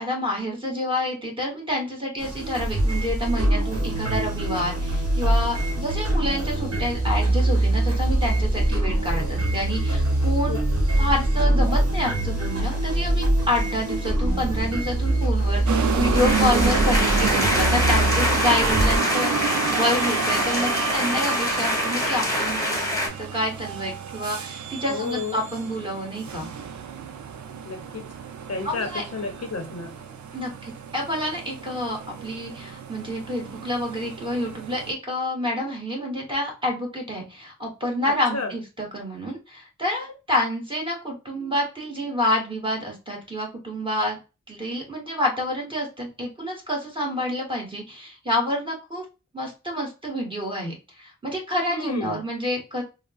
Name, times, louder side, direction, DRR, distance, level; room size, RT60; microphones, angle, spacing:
voice 1, 0.0-22.8 23.2-26.5 28.6-29.0 30.3-44.2 44.5-49.0 49.3-52.8, left 1 dB, 15° right, -2 dB, 1.4 m, -28 dB
sound 1, 2.2-19.0, right 1 dB, 50° right, 1.1 m, -23 dB
sound 2, 15.7-34.9, right 6 dB, 75° right, 0.5 m, -30 dB
sound 3, 16.1-23.1, left 1 dB, 10° left, 1.1 m, -25 dB
voice 2, 24.9-25.4 27.6-28.0 28.5-29.9 38.3-38.5 51.7-52.2, left 4 dB, 55° left, 4 dB, 0.7 m, -31 dB
3.5 x 2.0 x 2.3 m, 0.30 s
cardioid pair, 45°, 30 cm